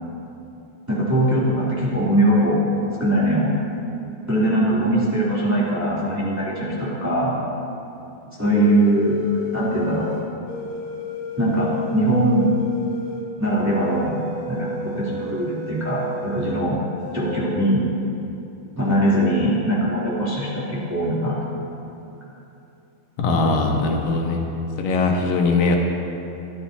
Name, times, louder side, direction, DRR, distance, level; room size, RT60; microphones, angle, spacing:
voice 1, 0.9-2.6 3.0-3.5 4.3-7.4 8.4-9.2 9.5-10.1 11.4-12.5 13.4-14.2 14.5-16.8 17.1-17.8 18.8-21.6, right 1 dB, 5° right, -8 dB, 2.8 m, -21 dB
sound 1, 8.5-16.6 17.0-17.4, left 4 dB, 55° left, 3.1 m, -32 dB
voice 2, 23.2-24.5 24.8-25.8, left 3 dB, 85° left, 0 dB, 3.0 m, -20 dB
24.5 x 12.0 x 2.9 m, 2.8 s
omnidirectional pair, 3.9 m